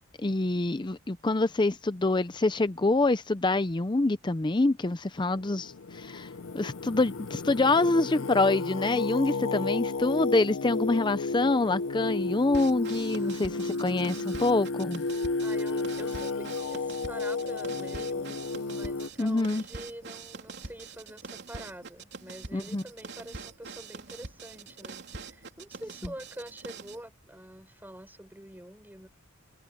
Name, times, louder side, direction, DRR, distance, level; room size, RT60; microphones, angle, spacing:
voice 1, 0.2-6.3 6.5-15.0 19.2-19.6 22.5-22.8, left 2 dB, 20° left, 0.5 m, -26 dB
Singing, 5.2-19.1, left 3 dB, 65° left, 0.6 m, -32 dB
sound 1, 12.5-27.0, right 4 dB, 55° right, 3.5 m, -44 dB
voice 2, 13.2-14.0 15.4-29.1, right 1 dB, 10° right, 5.1 m, -46 dB
head